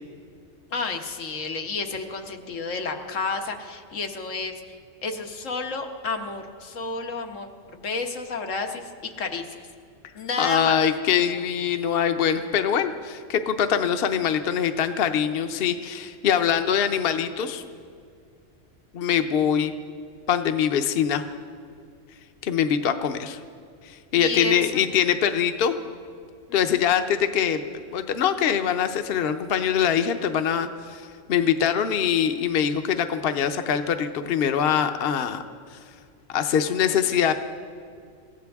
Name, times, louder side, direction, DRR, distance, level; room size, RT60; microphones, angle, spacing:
voice 1, 0.7-4.8 5.0-9.7 10.1-10.8 24.2-24.8 26.5-26.8, left 4 dB, 85° left, 4 dB, 1.6 m, -31 dB
voice 2, 10.4-17.6 18.9-19.7 20.3-21.2 22.4-23.4 23.8-25.8 26.5-27.6 27.9-35.4 35.7-35.8 36.3-37.3, left 8 dB, 55° left, 8 dB, 0.9 m, -23 dB
26.0 x 15.0 x 3.5 m, 2.2 s
omnidirectional pair, 1.3 m